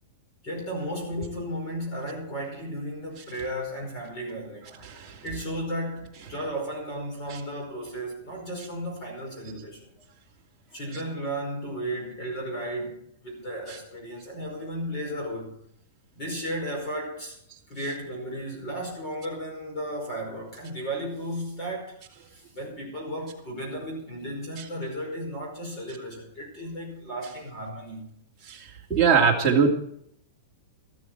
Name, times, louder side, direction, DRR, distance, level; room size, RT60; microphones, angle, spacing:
voice 1, 0.4-4.8 5.2-9.9 10.7-15.6 16.1-17.4 17.7-22.0 22.3-28.2, equal, 25° left, 5.1 m, -34 dB
voice 2, 4.8-5.1 28.5-28.6 28.9-29.7, right 6 dB, 10° right, 2.6 m, -20 dB
13.5 x 13.0 x 4.7 m
supercardioid pair, 175°, 0 cm